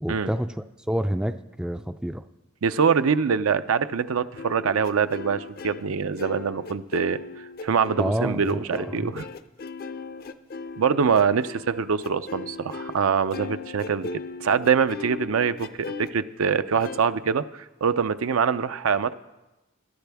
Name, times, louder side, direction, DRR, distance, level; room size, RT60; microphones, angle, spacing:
voice 1, 0.0-2.2 8.0-9.1, right 1 dB, 5° right, 9 dB, 0.3 m, -28 dB
voice 2, 2.6-7.2 7.6-9.3 10.8-19.1, right 6 dB, 75° right, 12 dB, 0.5 m, -24 dB
sound 1, 4.4-13.0 13.3-16.1 16.8-17.0, left 4 dB, 45° left, 0.5 m, -38 dB
21.5 x 11.0 x 3.5 m, 1.0 s
head